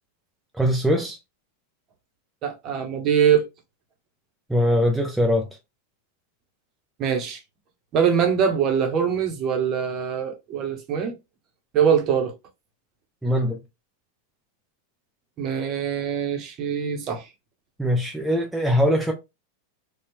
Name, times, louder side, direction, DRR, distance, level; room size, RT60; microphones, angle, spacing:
voice 1, 0.5-1.2 4.5-5.5 13.2-13.6 17.8-19.1, equal, 5° right, 0.6 m, -21 dB
voice 2, 2.4-3.5 7.0-7.4 7.9-11.1 11.7-12.3 15.4-17.3, right 8 dB, 35° right, 1.0 m, -23 dB
4.2 x 2.4 x 3.0 m
figure-of-eight pair, 90°, 0 cm